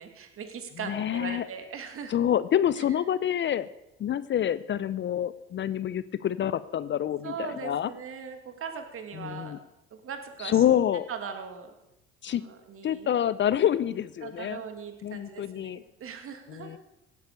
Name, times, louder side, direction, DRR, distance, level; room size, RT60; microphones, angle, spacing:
voice 1, 0.0-2.2 2.8-2.9 7.2-9.5 9.9-10.6 11.1-11.7 12.3-13.1 14.2-16.8, right 6 dB, 45° right, 6 dB, 2.6 m, -40 dB
voice 2, 0.8-1.5 2.1-3.7 4.0-7.9 9.1-9.6 10.4-11.1 12.2-12.4 12.8-14.6 15.0-15.8 16.5-16.8, left 10 dB, 35° left, 17 dB, 0.6 m, -27 dB
17.0 x 9.6 x 6.8 m, 0.91 s
hypercardioid pair, 60°, 31 cm